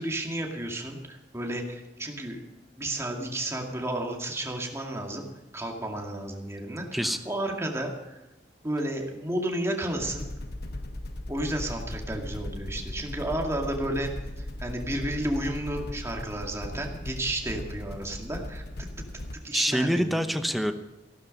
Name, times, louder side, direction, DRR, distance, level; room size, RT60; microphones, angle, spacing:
voice 1, 0.0-2.4 2.8-5.2 5.5-8.2 8.6-10.3 11.3-14.1 14.4-18.6 19.4-20.2, right 1 dB, 15° right, 1 dB, 2.2 m, -32 dB
sound 1, 10.0-19.4, left 1 dB, 60° left, 1.0 m, -37 dB
voice 2, 19.5-20.7, equal, ahead, 8 dB, 0.9 m, -25 dB
15.5 x 12.0 x 5.4 m, 1.0 s
head